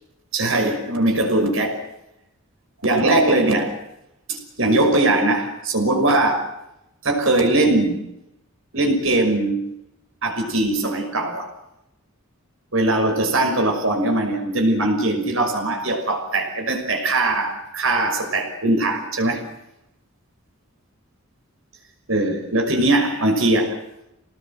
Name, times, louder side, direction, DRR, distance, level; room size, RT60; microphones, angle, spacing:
voice 1, 0.3-1.8 2.8-3.7 4.3-6.5 7.0-8.0 8.7-9.6 10.2-11.5 12.7-19.4 22.1-23.8, right 2 dB, 70° right, 5 dB, 5.9 m, -20 dB
28.0 x 19.0 x 7.7 m, 0.84 s
head